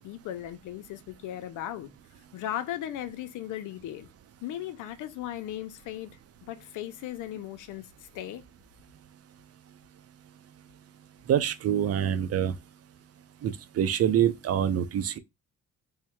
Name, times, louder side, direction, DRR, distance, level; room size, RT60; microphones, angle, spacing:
voice 1, 0.0-1.9 2.3-4.1 4.4-8.4, left 12 dB, 90° left, 0.6 m, -37 dB
voice 2, 11.3-12.5 13.4-15.2, right 9 dB, 55° right, 0.6 m, -25 dB
3.6 x 2.1 x 4.3 m
cardioid pair, 90°, 30 cm